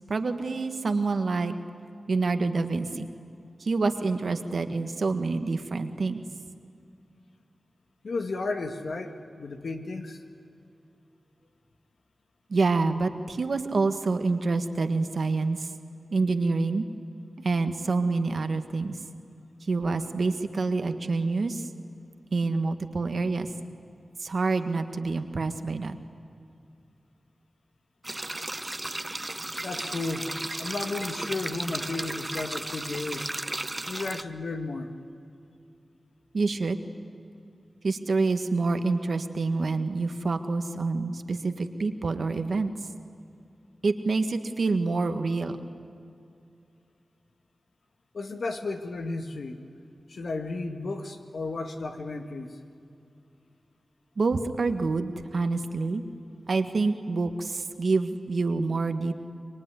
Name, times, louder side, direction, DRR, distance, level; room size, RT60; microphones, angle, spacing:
voice 1, 0.1-1.5 2.1-3.1 3.6-6.2 12.5-15.7 16.1-16.8 17.4-19.0 19.7-21.7 22.3-23.5 24.2-26.0 36.3-36.8 37.8-42.7 43.8-45.6 54.2-56.0 56.5-59.2, right 3 dB, 75° right, 7 dB, 1.6 m, -27 dB
voice 2, 8.0-10.2 29.6-30.3 30.6-33.3 33.9-34.9 48.1-49.6 50.1-52.6, left 3 dB, 80° left, 5 dB, 1.9 m, -33 dB
sound 1, 28.0-34.2, right 1 dB, 25° right, 0.8 m, -35 dB
25.5 x 23.0 x 9.8 m, 2.6 s
cardioid pair, 45°, 0 cm